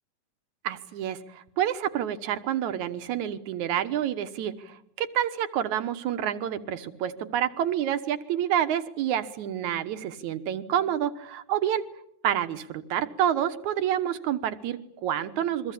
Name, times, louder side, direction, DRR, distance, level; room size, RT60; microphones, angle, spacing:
voice 1, 0.6-11.8 12.2-15.7, right 10 dB, 70° right, 11 dB, 2.6 m, -28 dB
29.0 x 23.0 x 8.6 m, 0.75 s
omnidirectional pair, 3.6 m